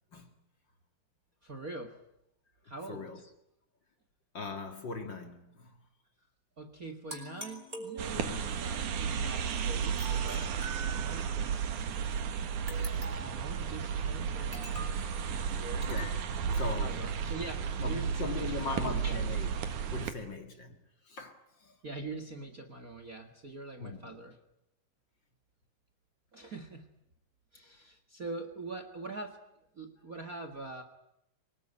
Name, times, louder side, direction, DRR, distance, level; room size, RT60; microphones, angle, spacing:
voice 1, 1.4-2.0 2.6-3.1 6.6-11.6 13.2-15.0 15.3-15.9 16.5-19.2 21.8-24.4 26.3-26.9 27.5-29.4 29.7-30.8, right 3 dB, 35° right, 1.7 m, -44 dB
voice 2, 2.7-3.2 4.3-5.9 8.2-8.4 15.9-16.1 16.5-17.0 17.8-19.5 19.9-21.8 23.8-24.2, left 4 dB, 40° left, 2.3 m, -40 dB
sound 1, 7.1-8.5 10.0-11.4 12.7-13.4 14.5-15.0 15.8-16.2, right 2 dB, 15° right, 5.1 m, -44 dB
sound 2, 8.0-20.1, right 7 dB, 90° right, 3.2 m, -33 dB
24.5 x 21.0 x 9.8 m
omnidirectional pair, 3.4 m